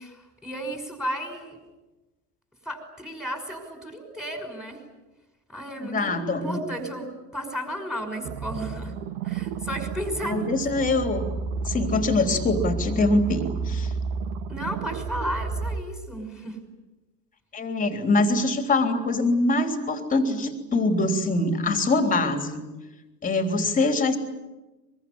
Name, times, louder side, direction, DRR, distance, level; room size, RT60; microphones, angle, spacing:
voice 1, 0.0-1.6 2.6-4.8 5.5-8.9 9.2-10.5 14.5-16.6, equal, ahead, 6 dB, 6.0 m, -34 dB
voice 2, 5.8-6.6 10.2-11.3 11.6-13.9 17.5-22.6 23.2-24.2, left 2 dB, 15° left, 7 dB, 3.5 m, -24 dB
sound 1, 8.2-15.8, right 4 dB, 45° right, 1.9 m, -31 dB
23.5 x 23.5 x 9.8 m, 1.1 s
figure-of-eight pair, 90°, 49 cm